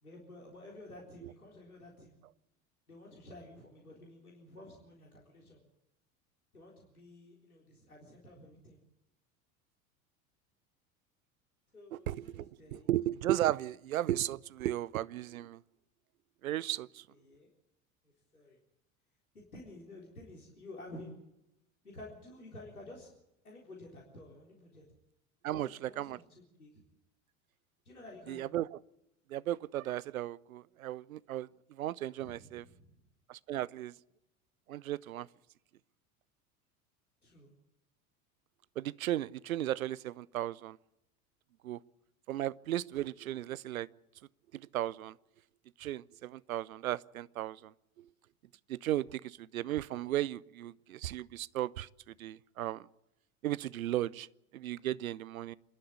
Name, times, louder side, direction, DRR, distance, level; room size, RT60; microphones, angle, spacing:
voice 1, 0.0-2.2 2.9-5.6 6.5-8.8 11.7-12.9 17.2-17.5 18.3-18.6 19.3-21.2 21.8-23.1 23.4-24.9 25.5-26.8 27.9-28.5 32.2-32.9 37.2-37.5, left 1 dB, 90° left, 3.9 m, -51 dB
voice 2, 11.9-15.6 16.4-17.0 25.4-26.2 28.3-28.8 29.3-32.6 33.3-33.9 34.7-35.3 38.8-40.8 41.6-41.8 42.3-43.9 44.5-45.1 45.8-47.7 48.7-52.9 53.4-54.3 54.5-55.5, right 13 dB, 75° right, 0.7 m, -35 dB
27.5 x 11.5 x 8.5 m
figure-of-eight pair, 80°, 43 cm